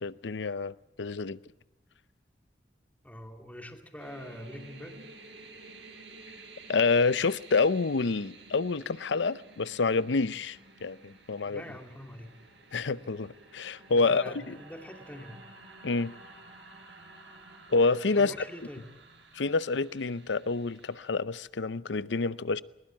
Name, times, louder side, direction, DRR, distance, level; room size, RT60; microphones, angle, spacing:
voice 1, 0.0-1.4 6.7-11.6 12.7-14.2 15.8-16.1 17.7-18.3 19.3-22.6, left 4 dB, 90° left, 0.6 m, -28 dB
voice 2, 3.0-5.1 11.5-12.3 13.9-15.4 18.1-18.9, left 1 dB, 10° left, 2.5 m, -44 dB
sound 1, 4.0-21.1, right 3 dB, 80° right, 5.4 m, -52 dB
21.0 x 20.0 x 7.3 m
head